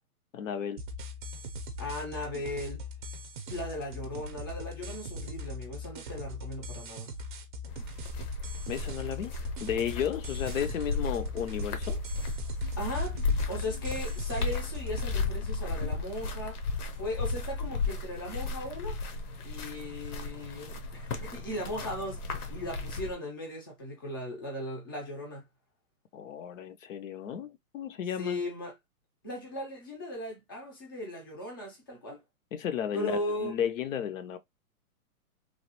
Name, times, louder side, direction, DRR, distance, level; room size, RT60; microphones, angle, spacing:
voice 1, 0.3-0.8 8.7-9.3 9.6-12.0 26.1-28.4 32.5-34.4, left 9 dB, 65° left, 0.5 m, -33 dB
sound 1, 0.8-15.2, left 1 dB, 35° right, 0.5 m, -41 dB
voice 2, 1.8-2.8 3.5-7.1 12.8-13.2 13.5-16.6 16.9-19.0 19.4-25.5 28.2-28.7 29.2-32.2 32.9-33.7, left 1 dB, 15° left, 0.4 m, -37 dB
sound 2, 7.7-23.1, left 3 dB, 85° left, 1.0 m, -34 dB
3.1 x 2.2 x 2.9 m
hypercardioid pair, 160°, 43 cm